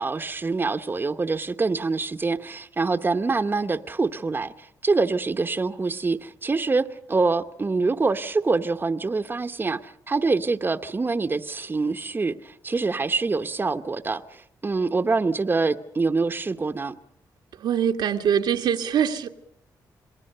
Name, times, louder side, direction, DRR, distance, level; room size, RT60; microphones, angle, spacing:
voice 1, 0.0-17.0, right 3 dB, 30° right, 0.9 m, -25 dB
voice 2, 17.6-19.3, right 8 dB, 85° right, 1.4 m, -23 dB
27.5 x 20.0 x 6.7 m
cardioid pair, 80°, 7 cm